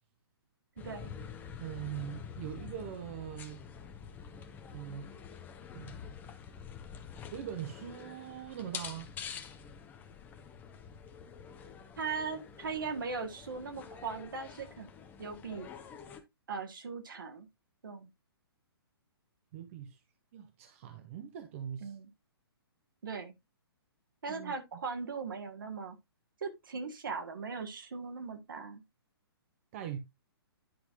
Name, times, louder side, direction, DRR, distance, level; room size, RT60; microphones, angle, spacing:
sound 1, 0.8-16.2, left 7 dB, 15° left, 0.8 m, -47 dB
voice 1, 0.8-1.1 12.0-14.9 15.2-15.7 16.5-17.5 17.8-18.1 21.8-22.1 23.0-23.3 24.2-26.0 26.4-28.8, right 5 dB, 55° right, 1.6 m, -39 dB
voice 2, 1.6-3.6 4.7-5.1 5.7-6.0 7.3-9.1 19.5-20.0 20.3-21.9 24.3-24.5 29.7-30.0, right 10 dB, 35° right, 0.8 m, -42 dB
10.0 x 5.8 x 2.6 m
figure-of-eight pair, 125°, 13 cm